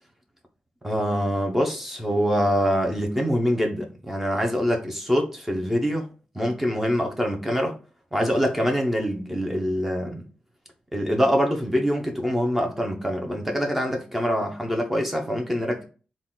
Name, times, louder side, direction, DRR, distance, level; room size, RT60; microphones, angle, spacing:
voice 1, 0.8-6.1 6.3-7.7 8.1-10.3 10.9-15.8, equal, 10° right, 0.8 m, -24 dB
3.8 x 2.4 x 3.8 m
wide cardioid pair, 125°, 3 cm